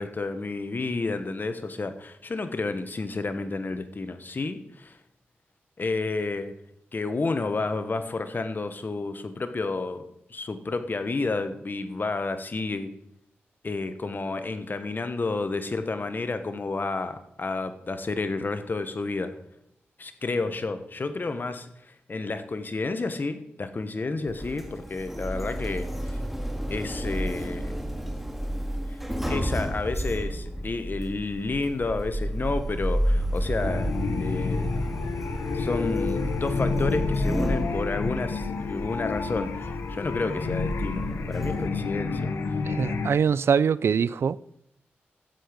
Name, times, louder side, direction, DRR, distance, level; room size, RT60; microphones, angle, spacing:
voice 1, 0.0-5.0 5.8-6.5 6.9-10.0 10.3-12.9 13.6-19.3 20.0-26.2 26.7-27.8 28.9-29.0 29.2-33.9 34.2-34.7 35.5-42.6, left 3 dB, 50° left, 1.3 m, -30 dB
Sliding door, 24.3-41.7, equal, 5° right, 1.9 m, -31 dB
sound 1, 33.6-43.1, left 4 dB, 90° left, 1.0 m, -30 dB
voice 2, 42.7-44.6, right 6 dB, 70° right, 0.4 m, -24 dB
13.0 x 7.9 x 5.2 m
cardioid pair, 50°, 4 cm